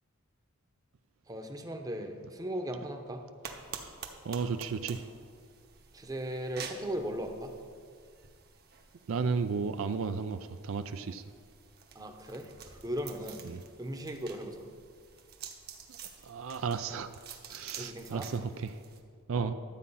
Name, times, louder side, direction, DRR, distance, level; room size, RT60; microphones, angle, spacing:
voice 1, 1.3-3.2 5.9-7.5 11.9-13.5 13.8-14.7 17.8-18.3 19.3-19.5, equal, 15° right, 4 dB, 0.8 m, -38 dB
sound 1, 3.4-19.0, right 6 dB, 45° right, 1.1 m, -49 dB
voice 2, 4.2-5.0 9.1-11.2 13.5-13.6 16.2-17.1 17.5-18.7 19.3-19.5, right 5 dB, 65° right, 10 dB, 0.4 m, -33 dB
12.0 x 8.4 x 5.5 m, 2.1 s
head